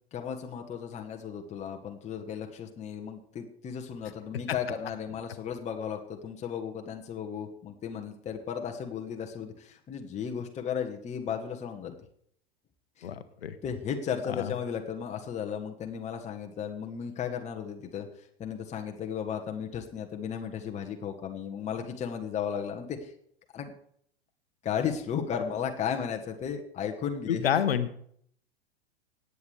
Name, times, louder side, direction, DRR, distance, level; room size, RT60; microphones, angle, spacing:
voice 1, 0.1-11.9 13.0-13.1 13.6-18.1 18.4-23.1 23.5-23.7 24.6-27.5, left 7 dB, 20° left, 4 dB, 1.2 m, -35 dB
voice 2, 13.0-13.6 14.4-14.5 27.3-27.9, left 9 dB, 70° left, 11 dB, 1.1 m, -28 dB
18.0 x 8.2 x 3.3 m, 0.66 s
figure-of-eight pair, 95°, 31 cm